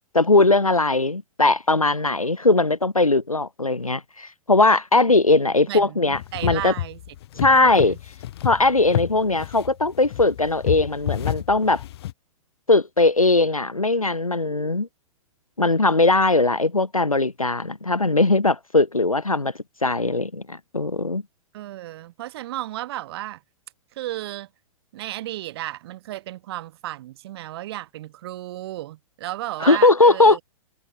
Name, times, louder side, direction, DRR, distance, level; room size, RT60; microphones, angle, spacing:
voice 1, 0.1-6.7 7.4-8.0 8.4-11.8 12.7-14.9 15.6-19.5 19.8-21.2 29.6-30.4, left 2 dB, 85° left, 2.2 m, -19 dB
voice 2, 5.7-8.0 21.5-23.4 23.9-24.5 24.9-30.4, right 15 dB, 45° right, 7.5 m, -34 dB
sound 1, 6.1-12.1, left 14 dB, 50° left, 4.5 m, -30 dB
figure-of-eight pair, 110°, 17 cm